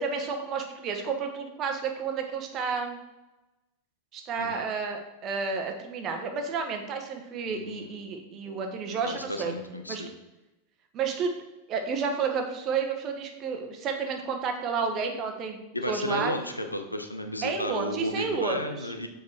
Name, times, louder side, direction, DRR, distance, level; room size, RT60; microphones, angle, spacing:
voice 1, 0.0-3.0 4.1-9.5 9.9-10.0 10.9-11.3 11.7-15.6 15.9-16.4 17.4-18.9, right 5 dB, 35° right, 5 dB, 1.1 m, -31 dB
voice 2, 7.5-8.0 8.9-10.1 15.7-19.1, left 1 dB, 85° left, 6 dB, 0.7 m, -33 dB
7.1 x 4.7 x 4.5 m, 1.0 s
figure-of-eight pair, 90°, 0 cm